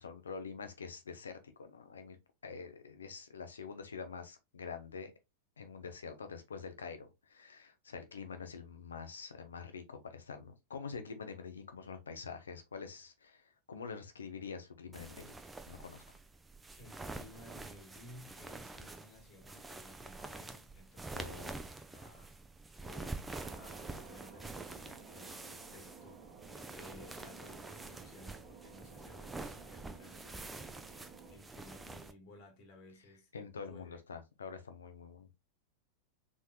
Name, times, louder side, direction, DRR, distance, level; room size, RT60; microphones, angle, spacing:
voice 1, 0.0-2.2 2.4-5.1 5.6-15.3 15.7-16.2 21.1-21.5 33.3-35.3, left 5 dB, 70° left, 0.8 m, -46 dB
sound 1, 14.9-32.1, right 3 dB, 10° right, 0.5 m, -47 dB
voice 2, 16.8-22.4 22.8-26.3 26.7-30.7 31.3-34.0, left 2 dB, 40° left, 1.8 m, -57 dB
Thunder, 23.2-31.4, right 5 dB, 35° right, 1.0 m, -54 dB
4.2 x 3.6 x 2.2 m
figure-of-eight pair, 90°, 0 cm